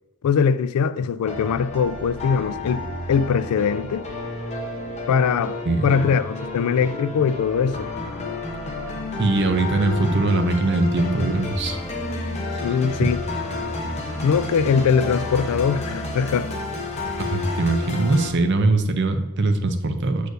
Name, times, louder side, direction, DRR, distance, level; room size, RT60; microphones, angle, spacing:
voice 1, 0.2-4.1 5.1-7.9 12.6-13.2 14.2-16.5, left 6 dB, 85° left, 0.3 m, -21 dB
sound 1, 1.2-18.3, left 2 dB, 30° left, 0.9 m, -31 dB
voice 2, 5.7-6.1 9.2-11.8 12.5-12.8 17.3-20.3, right 2 dB, 50° right, 0.6 m, -21 dB
6.5 x 6.4 x 2.6 m
head